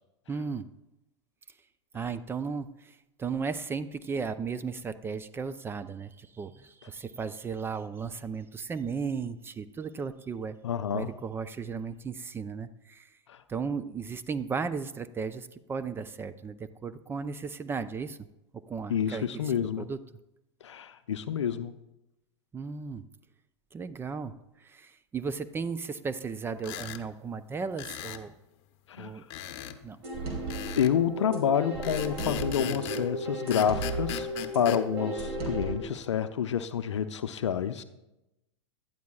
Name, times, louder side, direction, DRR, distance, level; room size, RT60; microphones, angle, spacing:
voice 1, 0.3-0.7 1.9-10.6 10.9-13.2 13.5-18.2 18.5-20.0 22.5-23.0 23.7-28.4 29.0-29.3 29.8-30.0, right 5 dB, 15° right, 12 dB, 0.4 m, -35 dB
voice 2, 10.6-11.1 13.3-13.4 18.9-19.9 20.6-21.7 28.9-29.2 30.8-34.3 34.5-37.8, left 8 dB, 70° left, 10 dB, 0.6 m, -28 dB
sound 1, 26.6-27.0 27.8-28.3 29.3-29.8 30.5-31.0 31.8-33.1 33.5-34.8, left 12 dB, 45° left, 0.9 m, -38 dB
sound 2, 30.0-35.8, right 2 dB, 40° right, 3.1 m, -34 dB
17.5 x 12.0 x 2.4 m, 0.94 s
figure-of-eight pair, 95°, 15 cm